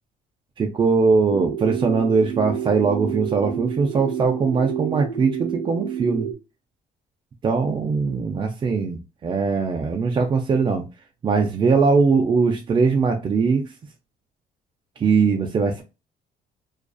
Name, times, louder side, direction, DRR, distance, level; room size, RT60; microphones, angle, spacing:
voice 1, 0.6-6.3 7.4-10.9 11.2-13.7 15.0-15.8, right 4 dB, 30° right, 0.4 m, -21 dB
sound 1, 1.3-6.3, right 9 dB, 85° right, 0.5 m, -29 dB
2.5 x 2.3 x 2.2 m
cardioid pair, 110°, 17 cm